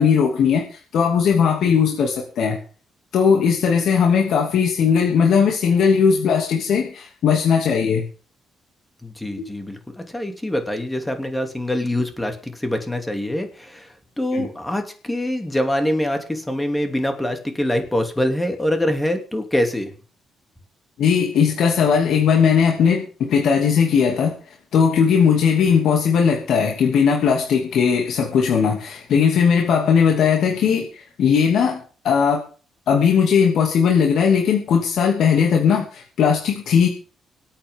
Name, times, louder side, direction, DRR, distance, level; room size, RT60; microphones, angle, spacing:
voice 1, 0.0-2.6 3.1-8.1 14.3-14.5 21.0-24.3 24.7-32.4 32.9-36.9, left 6 dB, 70° left, 1 dB, 2.7 m, -18 dB
voice 2, 9.0-19.9, left 1 dB, 10° left, 5 dB, 3.0 m, -24 dB
25.0 x 8.8 x 3.9 m, 0.40 s
cardioid pair, 90°, 0 cm